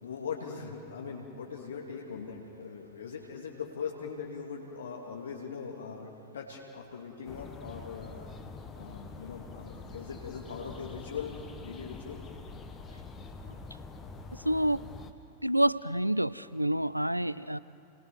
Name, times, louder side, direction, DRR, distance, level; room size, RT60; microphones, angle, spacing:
voice 1, 0.0-8.3 8.8-11.4 11.6-12.2, left 6 dB, 65° left, 0 dB, 2.8 m, -40 dB
sound 1, 7.2-15.1, left 4 dB, 25° left, 1.6 m, -45 dB
voice 2, 14.4-14.8 15.4-17.6, right 1 dB, 90° right, 18 dB, 0.5 m, -28 dB
29.0 x 21.0 x 6.1 m, 2.6 s
figure-of-eight pair, 90°, 0 cm